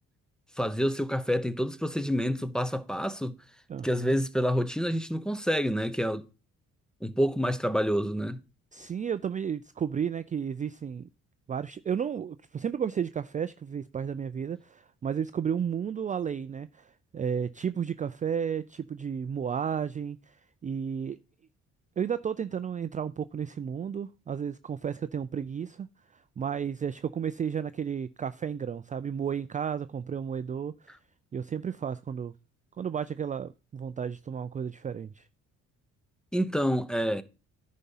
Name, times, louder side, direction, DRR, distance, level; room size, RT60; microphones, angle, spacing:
voice 1, 0.6-3.3 3.8-6.3 7.0-8.4 36.3-37.2, equal, ahead, 0.7 m, -28 dB
voice 2, 3.7-4.1 8.7-11.1 11.5-21.2 22.0-25.9 26.1-31.0 31.3-32.3 32.8-35.3, right 7 dB, 25° right, 0.3 m, -33 dB
10.0 x 4.2 x 5.5 m
cardioid pair, 90°, 30 cm